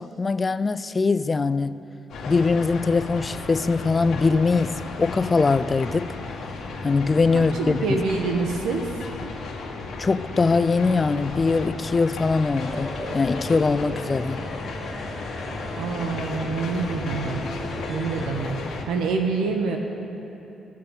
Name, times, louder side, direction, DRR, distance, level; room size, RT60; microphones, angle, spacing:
voice 1, 0.0-1.8 2.3-6.2 6.8-8.0 10.0-14.4, left 4 dB, 30° left, 0.4 m, -22 dB
sound 1, 2.1-18.8, left 3 dB, 65° left, 1.7 m, -34 dB
voice 2, 7.3-8.8 15.8-17.4 17.9-18.6 18.9-19.8, right 4 dB, 85° right, 1.1 m, -26 dB
sound 2, 12.6-18.3, left 1 dB, 5° left, 1.6 m, -37 dB
19.0 x 6.7 x 5.3 m
cardioid pair, 90°, 0 cm